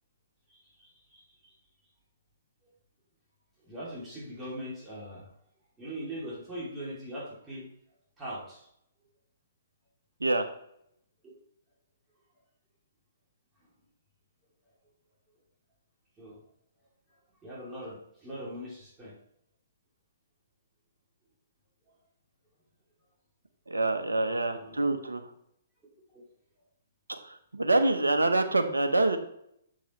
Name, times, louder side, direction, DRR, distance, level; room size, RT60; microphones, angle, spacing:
voice 1, 0.5-1.5 2.6-2.7 3.6-5.3 5.8-7.7 8.2-8.7 16.2-16.4 17.4-19.2 21.9-22.0 24.2-24.8 26.1-26.2, equal, 15° right, -7 dB, 2.6 m, -41 dB
voice 2, 23.7-25.3 27.1-29.2, right 2 dB, 85° right, 7 dB, 0.7 m, -26 dB
7.4 x 6.5 x 3.0 m, 0.73 s
figure-of-eight pair, 125°, 0 cm